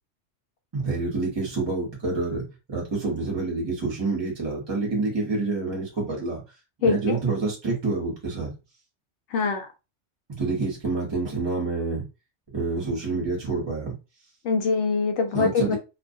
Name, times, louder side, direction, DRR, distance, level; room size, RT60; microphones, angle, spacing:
voice 1, 0.7-6.4 6.8-8.5 10.4-12.0 12.5-13.9 15.3-15.8, right 3 dB, 25° right, 0.8 m, -27 dB
voice 2, 6.8-7.2 9.3-9.7 14.4-15.8, left 4 dB, 75° left, 0.9 m, -23 dB
2.4 x 2.1 x 2.6 m
omnidirectional pair, 1.2 m